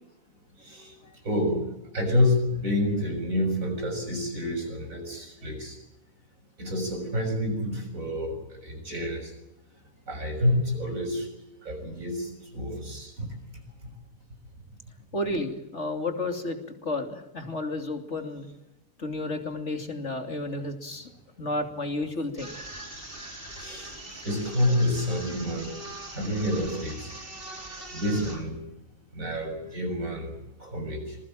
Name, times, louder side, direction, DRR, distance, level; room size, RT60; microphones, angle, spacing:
voice 1, 0.6-1.0 1.2-5.8 6.6-9.3 10.1-11.3 11.6-13.4 23.5-23.9 24.2-25.7 26.1-27.1 27.9-28.6 29.1-31.2, left 1 dB, 65° right, 5 dB, 7.2 m, -28 dB
voice 2, 15.1-18.5 19.0-21.1 21.4-22.5, left 2 dB, 50° left, 5 dB, 3.1 m, -32 dB
sound 1, 22.4-28.4, right 2 dB, 40° right, 4.6 m, -41 dB
26.5 x 21.5 x 7.6 m, 0.92 s
omnidirectional pair, 1.5 m